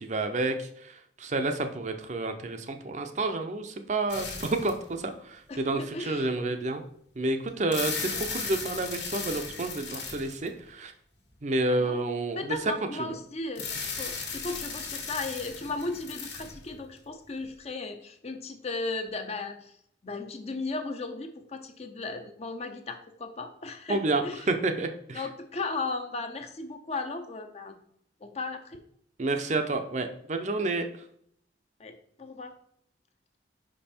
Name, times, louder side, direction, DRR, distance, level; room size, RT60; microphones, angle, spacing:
voice 1, 0.0-6.8 7.2-10.9 11.4-12.6 13.0-13.1 23.9-25.2 29.2-30.9, right 2 dB, 40° right, 7 dB, 0.6 m, -30 dB
sound 1, 4.1-4.9 5.6-5.7 7.5-10.7 13.6-17.0, left 5 dB, 70° left, 1.6 m, -36 dB
voice 2, 5.5-6.3 8.1-8.2 11.7-12.0 12.3-19.7 20.0-24.5 25.1-27.8 28.2-28.8 31.8-32.5, left 3 dB, 35° left, 6 dB, 0.6 m, -36 dB
5.4 x 5.1 x 4.3 m, 0.68 s
head